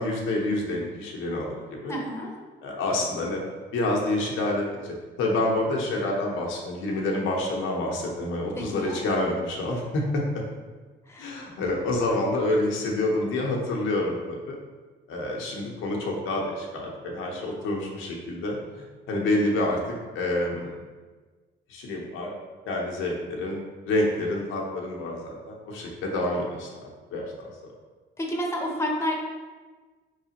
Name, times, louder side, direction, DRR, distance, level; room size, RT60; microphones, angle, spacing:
voice 1, 0.0-2.0 2.6-3.4 3.7-10.4 11.2-14.6 15.1-18.6 19.1-19.8 20.1-20.8 21.7-22.3 22.7-23.6 23.9-27.7, left 1 dB, 90° left, -1 dB, 0.8 m, -28 dB
voice 2, 1.9-2.3 8.6-9.0 11.1-11.3 28.2-29.2, equal, 15° left, -1 dB, 0.9 m, -29 dB
4.8 x 3.2 x 2.9 m, 1.4 s
cardioid pair, 90°, 20 cm